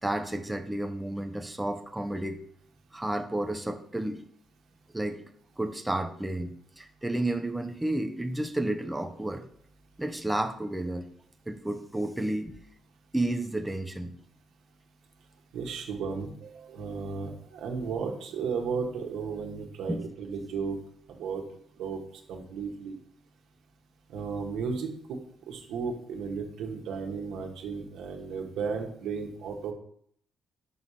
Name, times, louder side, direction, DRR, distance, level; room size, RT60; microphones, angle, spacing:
voice 1, 0.0-2.4 2.9-4.2 4.9-5.2 5.6-9.4 10.0-11.1 11.5-12.6 13.1-14.2 19.9-20.0, right 1 dB, 10° right, 6 dB, 0.7 m, -31 dB
voice 2, 15.5-20.8 21.1-21.4 21.8-22.0 22.3-23.0 24.1-25.2 25.5-29.7, right 5 dB, 80° right, 2 dB, 1.5 m, -34 dB
6.1 x 4.8 x 5.7 m, 0.64 s
cardioid pair, 90°, 0 cm